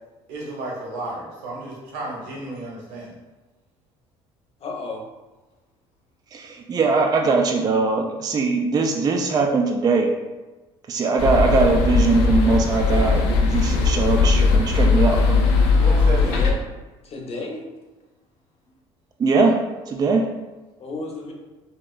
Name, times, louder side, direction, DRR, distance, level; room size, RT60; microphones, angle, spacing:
voice 1, 0.3-3.2 15.7-16.5, right 1 dB, 75° right, -4 dB, 0.9 m, -32 dB
voice 2, 4.6-5.0 16.2-16.6 17.0-17.6 20.8-21.3, left 3 dB, 45° left, 0 dB, 0.7 m, -32 dB
voice 3, 6.3-10.1 10.9-15.5 19.2-19.6 19.9-20.3, right 4 dB, 25° right, 3 dB, 0.3 m, -21 dB
sound 1, 11.2-16.5, left 4 dB, 85° left, 0.4 m, -19 dB
3.3 x 2.0 x 2.3 m, 1.1 s
hypercardioid pair, 70°, 14 cm